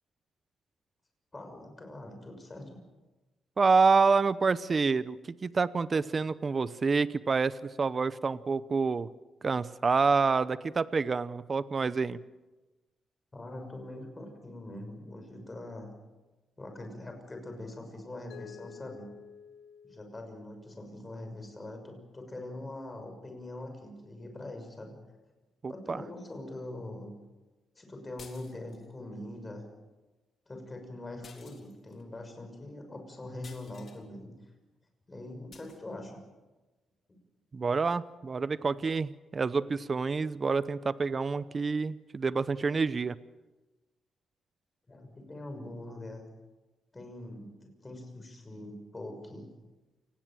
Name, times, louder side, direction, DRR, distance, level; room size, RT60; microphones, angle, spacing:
voice 1, 1.3-2.8 13.3-15.9 16.6-19.1 19.8-25.0 25.7-27.1 27.7-29.7 30.5-34.4 35.1-36.2 44.9-46.3 46.9-49.5, left 1 dB, 20° left, 4 dB, 6.4 m, -43 dB
voice 2, 3.6-5.2 5.4-9.1 9.4-12.2 25.6-26.0 37.5-43.1, right 4 dB, 35° right, 16 dB, 0.8 m, -27 dB
Mallet percussion, 18.3-21.2, left 8 dB, 80° left, 1.3 m, -51 dB
sound 1, 28.2-28.9 31.2-32.0 33.4-34.0 35.5-35.8, left 5 dB, 45° left, 3.7 m, -53 dB
29.0 x 19.0 x 7.7 m, 1.1 s
cardioid pair, 120°, 0 cm